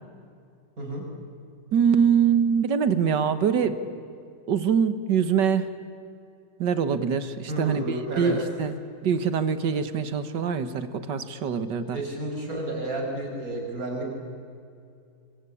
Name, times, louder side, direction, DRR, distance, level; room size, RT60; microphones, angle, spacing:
voice 1, 1.7-3.8 4.5-5.7 6.6-8.7 9.0-12.0, right 7 dB, 85° right, 11 dB, 2.0 m, -24 dB
voice 2, 7.5-8.3 11.9-14.1, right 1 dB, 50° right, 1 dB, 5.7 m, -31 dB
26.0 x 24.5 x 8.5 m, 2.5 s
omnidirectional pair, 1.9 m